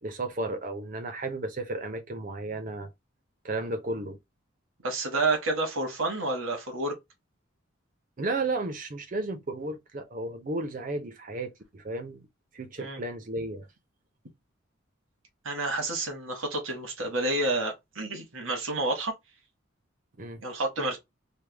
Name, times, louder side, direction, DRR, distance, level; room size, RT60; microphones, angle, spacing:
voice 1, 0.0-2.9 3.4-4.2 8.2-12.3 12.5-13.7 20.2-20.4, right 2 dB, 40° right, 0.6 m, -33 dB
voice 2, 4.8-6.9 12.8-13.0 15.4-19.1 20.4-21.0, right 2 dB, 90° right, 1.3 m, -29 dB
3.4 x 2.2 x 3.3 m
head